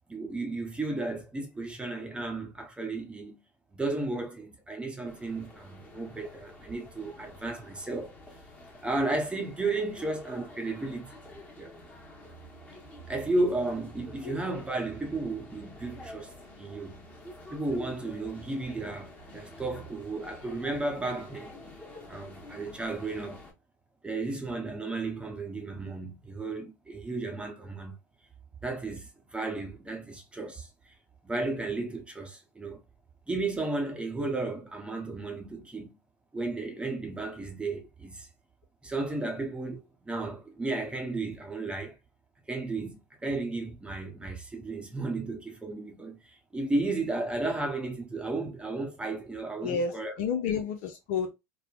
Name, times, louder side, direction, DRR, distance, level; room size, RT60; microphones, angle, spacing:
voice 1, 0.1-3.4 3.7-8.1 8.8-11.1 11.6-11.7 13.1-16.3 16.6-17.0 17.5-21.5 22.1-23.4 24.0-28.0 28.6-30.9 31.2-32.8 33.3-35.9 36.3-38.3 38.8-41.9 42.5-50.1, right 2 dB, 10° right, 0.8 m, -33 dB
sound 1, 5.1-23.5, equal, 15° left, 1.0 m, -48 dB
voice 2, 20.2-20.6 49.6-51.3, left 6 dB, 60° left, 0.5 m, -31 dB
3.3 x 2.0 x 2.3 m
hypercardioid pair, 85°, 9 cm